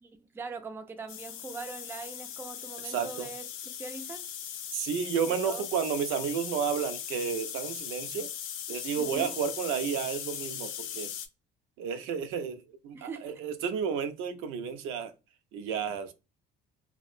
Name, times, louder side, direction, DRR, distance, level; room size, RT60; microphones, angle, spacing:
voice 1, 0.0-3.4 3.8-4.3 5.3-5.6 9.0-9.3 12.9-13.4, right 4 dB, 10° right, 0.3 m, -42 dB
sound 1, 1.1-11.3, left 9 dB, 75° left, 0.6 m, -39 dB
voice 2, 2.8-3.3 4.7-8.3 8.7-11.1 11.8-15.1 15.5-16.1, right 7 dB, 75° right, 0.5 m, -32 dB
2.8 x 2.1 x 2.4 m
cardioid pair, 110°, 21 cm